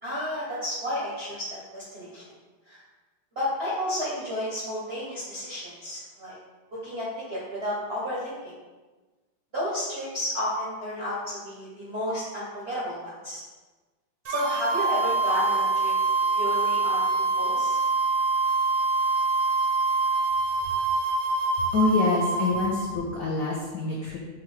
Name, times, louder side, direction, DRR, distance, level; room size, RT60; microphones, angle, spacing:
voice 1, 0.0-2.2 2.6-2.8 3.3-6.4 6.7-8.5 9.5-13.4 14.2-15.9 16.3-17.8, left 1 dB, 50° right, -8 dB, 0.7 m, -32 dB
sound 1, 14.3-22.9, right 3 dB, 80° right, 1.4 m, -25 dB
voice 2, 21.7-24.2, left 3 dB, 75° left, -4 dB, 0.8 m, -26 dB
6.3 x 2.3 x 3.2 m, 1.2 s
omnidirectional pair, 2.3 m